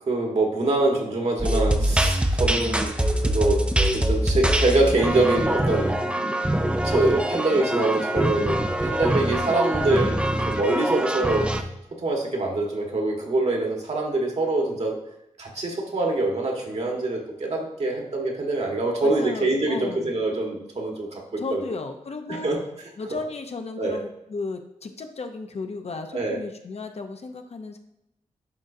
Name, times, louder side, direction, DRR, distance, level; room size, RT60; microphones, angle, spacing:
voice 1, 0.0-3.0 3.2-6.0 6.8-11.5 11.9-15.0 15.4-21.6 22.3-22.6 23.1-23.2 23.8-24.0 26.1-26.4, right 2 dB, 55° right, 0 dB, 1.5 m, -24 dB
sound 1, 1.4-11.6, right 1 dB, 10° right, 0.5 m, -24 dB
voice 2, 19.0-20.1 21.4-22.5 23.0-27.8, left 3 dB, 50° left, 5 dB, 0.7 m, -34 dB
10.5 x 3.8 x 2.7 m, 0.86 s
wide cardioid pair, 110°, 13 cm